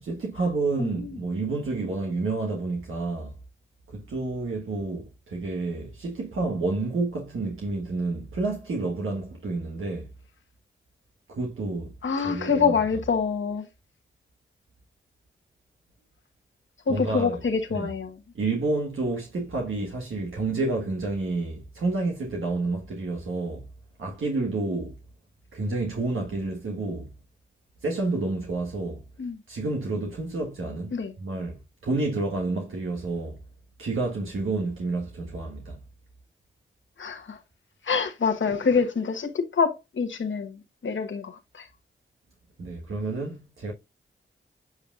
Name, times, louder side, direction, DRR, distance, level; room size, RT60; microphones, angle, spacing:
voice 1, 0.0-3.4 3.9-10.1 11.3-11.9 12.2-12.7 16.9-17.4 17.7-17.9 18.3-23.6 24.0-24.9 25.5-27.1 27.8-29.0 29.5-33.4 33.8-35.8 42.6-43.7, right 3 dB, 75° right, 1.5 m, -29 dB
voice 2, 0.8-1.2 12.0-13.7 16.9-18.2 29.2-29.4 30.9-31.1 37.0-37.4 37.8-41.7, left 5 dB, 65° left, 1.3 m, -26 dB
7.9 x 5.5 x 2.5 m
cardioid pair, 45°, 21 cm